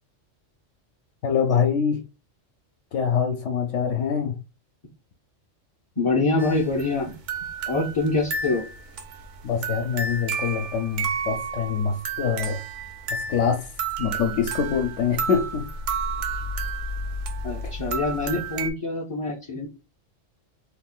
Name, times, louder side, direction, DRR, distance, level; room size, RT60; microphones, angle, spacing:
voice 1, 1.2-2.0 2.9-4.3 9.4-12.6 13.1-13.7 14.0-15.7 17.6-17.7, left 7 dB, 70° left, 0.9 m, -24 dB
voice 2, 6.0-7.2 7.7-8.7 17.4-19.7, left 3 dB, 45° left, 0.4 m, -25 dB
sound 1, 6.4-18.7, right 4 dB, 75° right, 0.9 m, -31 dB
2.7 x 2.3 x 3.7 m
omnidirectional pair, 1.3 m